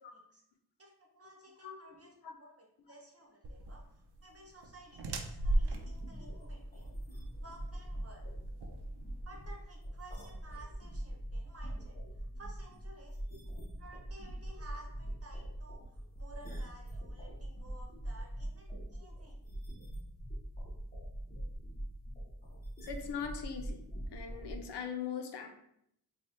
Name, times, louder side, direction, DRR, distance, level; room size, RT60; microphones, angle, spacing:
voice 1, 0.1-0.4 0.8-8.3 9.2-12.0 12.4-13.2 13.8-19.4, right 2 dB, 35° right, -1 dB, 1.1 m, -55 dB
sound 1, 3.4-9.5, right 1 dB, 75° right, 0.6 m, -37 dB
sound 2, 5.6-24.6, right 1 dB, 20° left, 1.0 m, -43 dB
voice 2, 22.8-23.8 24.1-25.5, left 7 dB, 80° left, 4 dB, 0.6 m, -40 dB
3.2 x 2.3 x 4.2 m, 0.74 s
cardioid pair, 70°, 40 cm